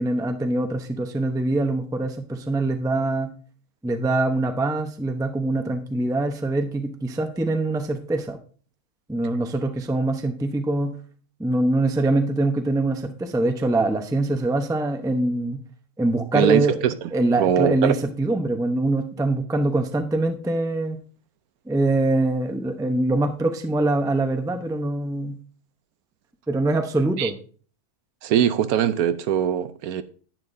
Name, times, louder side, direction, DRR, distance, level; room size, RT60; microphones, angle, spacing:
voice 1, 0.0-3.3 3.8-8.4 9.1-11.0 11.4-15.6 16.0-16.8 17.1-21.0 21.7-25.4 26.5-27.4, right 2 dB, 5° right, 0.4 m, -23 dB
voice 2, 16.3-17.9 27.2-27.3 28.2-30.0, right 10 dB, 75° right, 1.1 m, -22 dB
10.5 x 9.2 x 2.7 m
omnidirectional pair, 1.6 m